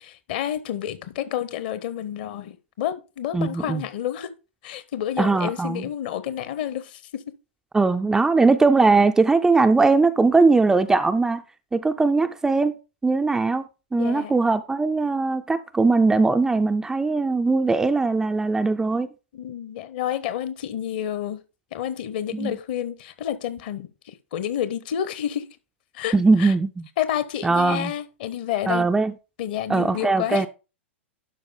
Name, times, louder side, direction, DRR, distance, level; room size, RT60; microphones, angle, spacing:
voice 1, 0.0-4.3 4.6-7.2 13.9-14.4 19.3-21.4 21.7-25.5 25.9-26.5 27.0-28.9 29.4-30.4, left 10 dB, 45° left, 0.9 m, -29 dB
voice 2, 3.3-3.8 5.2-5.9 7.7-11.4 11.7-12.7 13.0-13.6 13.9-19.1 22.3-22.6 26.1-26.9 27.4-27.9 28.7-29.1 29.7-30.5, right 3 dB, 10° right, 0.4 m, -20 dB
11.5 x 4.9 x 3.7 m
figure-of-eight pair, 100°, 7 cm